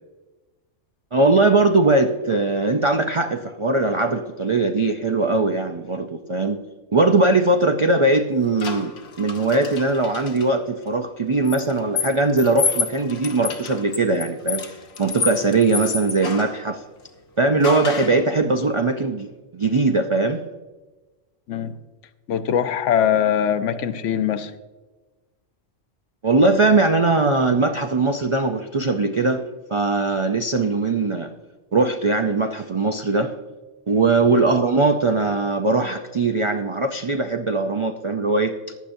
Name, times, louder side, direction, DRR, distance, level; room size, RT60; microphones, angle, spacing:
voice 1, 1.1-6.6 6.9-16.8 17.4-20.4 26.2-29.4 29.7-31.3 31.7-33.3 33.9-38.6, right 3 dB, 55° right, 5 dB, 0.3 m, -20 dB
sound 1, 8.6-10.5 11.5-16.6 17.6-18.3, left 5 dB, 60° left, 1.2 m, -29 dB
voice 2, 22.3-24.5 34.3-34.4, left 9 dB, 75° left, 11 dB, 1.0 m, -22 dB
15.0 x 10.0 x 2.6 m, 1.2 s
omnidirectional pair, 1.3 m